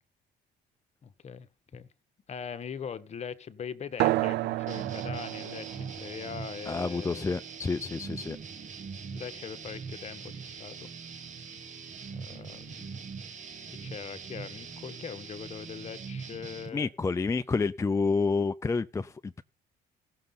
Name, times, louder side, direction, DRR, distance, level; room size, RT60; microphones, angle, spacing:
voice 1, 1.0-1.5 1.7-1.9 2.3-7.3 9.1-10.9 12.1-13.0 13.7-16.9, left 7 dB, 40° left, 1.3 m, -41 dB
sound 1, 4.0-9.0, right 16 dB, 80° right, 0.6 m, -33 dB
sound 2, 4.7-16.7, right 5 dB, 45° right, 2.2 m, -42 dB
voice 2, 6.7-8.4 16.7-19.4, left 4 dB, 15° left, 0.5 m, -29 dB
15.5 x 6.6 x 5.7 m
cardioid pair, 110°, 17 cm